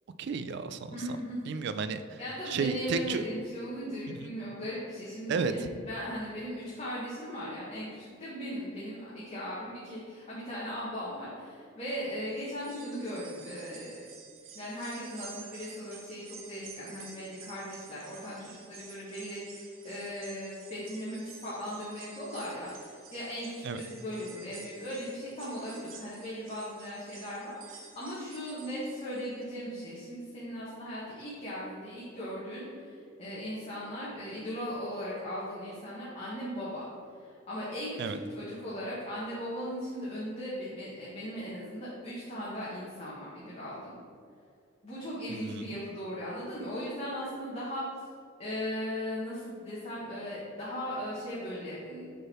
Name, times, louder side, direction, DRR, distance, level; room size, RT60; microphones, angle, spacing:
voice 1, 0.2-1.0 1.5-2.2 2.5-3.2 4.1-4.3 5.3-5.5 23.6-23.8 38.0-38.2 45.3-45.7, right 5 dB, 60° right, 11 dB, 0.4 m, -32 dB
voice 2, 0.9-1.5 2.2-14.1 14.5-36.9 37.2-44.0 44.8-47.8 48.4-52.0, equal, 30° left, -9 dB, 1.2 m, -38 dB
sound 1, 12.3-29.6 30.0-30.1 31.2-31.3, right 6 dB, 80° right, 0.8 m, -51 dB
6.7 x 3.7 x 4.2 m, 2.4 s
head